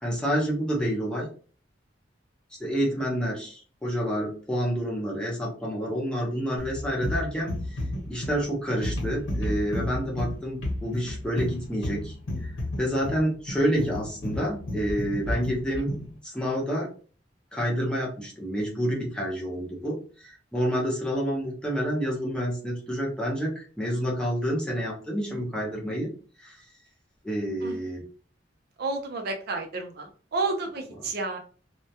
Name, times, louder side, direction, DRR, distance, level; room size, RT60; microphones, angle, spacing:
voice 1, 0.0-1.3 2.6-7.6 8.1-12.1 12.4-12.5 12.8-15.9 16.2-16.9 17.5-26.1 26.4-26.6 27.2-28.0, equal, 5° left, -3 dB, 0.7 m, -28 dB
sound 1, 6.6-16.1, left 1 dB, 80° left, 0.9 m, -32 dB
voice 2, 28.8-31.4, right 3 dB, 55° right, 4 dB, 0.5 m, -31 dB
2.2 x 2.1 x 2.7 m, 0.39 s
head